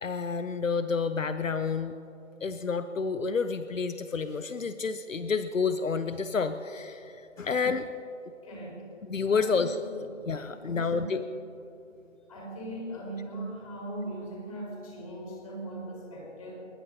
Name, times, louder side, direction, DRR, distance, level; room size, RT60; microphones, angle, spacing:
voice 1, 0.0-2.0 2.4-7.9 9.1-9.7 10.3-11.2, left 5 dB, 80° left, 11 dB, 0.9 m, -29 dB
voice 2, 8.4-8.9 9.3-9.6 9.9-10.0 10.5-11.1 12.3-16.5, right 1 dB, 25° left, -3 dB, 4.3 m, -39 dB
23.0 x 21.5 x 2.8 m, 2.9 s
figure-of-eight pair, 165°, 38 cm